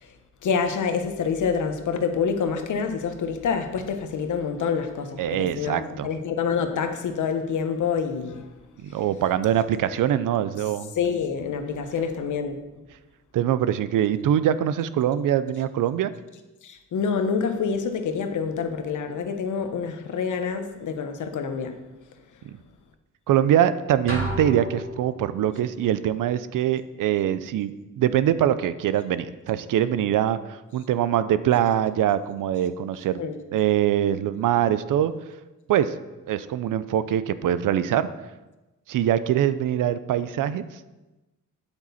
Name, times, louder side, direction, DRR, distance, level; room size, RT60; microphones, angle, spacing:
voice 1, 0.4-8.4 10.9-12.6 16.6-21.8 33.2-33.4, left 6 dB, 65° left, 7 dB, 1.1 m, -27 dB
voice 2, 5.2-6.1 8.8-10.9 13.3-16.1 22.5-22.6 23.3-33.2 33.5-35.1 35.7-35.9 36.3-38.1 38.9-40.6, right 10 dB, 75° right, 14 dB, 0.6 m, -23 dB
sound 1, 24.1-25.5, equal, 40° right, 2.8 m, -32 dB
8.9 x 8.3 x 4.2 m, 1.1 s
cardioid pair, 135°, 32 cm